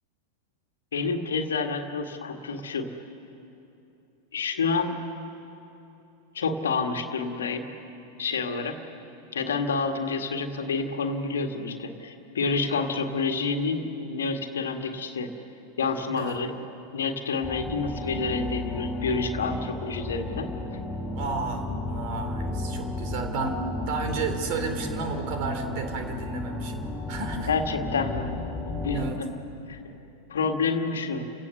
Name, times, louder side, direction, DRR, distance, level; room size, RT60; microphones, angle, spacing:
voice 1, 0.9-2.9 4.3-4.9 6.3-7.6 8.2-8.8 9.3-15.3 15.8-16.6 16.9-20.8 27.5-28.3 28.8-29.3 29.7-29.9 30.3-31.2, left 4 dB, 65° left, 5 dB, 1.9 m, -28 dB
sound 1, 17.4-29.1, left 2 dB, 10° left, 5.8 m, -33 dB
voice 2, 21.2-26.8 27.1-27.5 28.9-29.2, right 4 dB, 45° right, 5 dB, 3.2 m, -32 dB
30.0 x 17.5 x 7.0 m, 2.9 s
figure-of-eight pair, 90°, 0 cm